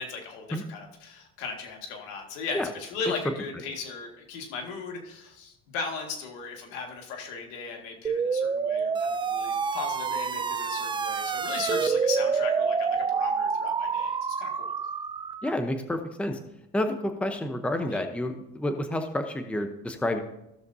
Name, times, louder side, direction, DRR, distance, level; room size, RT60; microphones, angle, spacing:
voice 1, 0.0-14.7 17.9-18.0, left 4 dB, 90° left, 2 dB, 2.0 m, -37 dB
sound 1, 8.0-15.5, right 5 dB, 15° right, 0.4 m, -27 dB
voice 2, 15.4-16.4 16.7-20.2, left 1 dB, 5° left, 6 dB, 0.7 m, -29 dB
15.5 x 6.7 x 2.7 m, 0.84 s
cardioid pair, 115°, 31 cm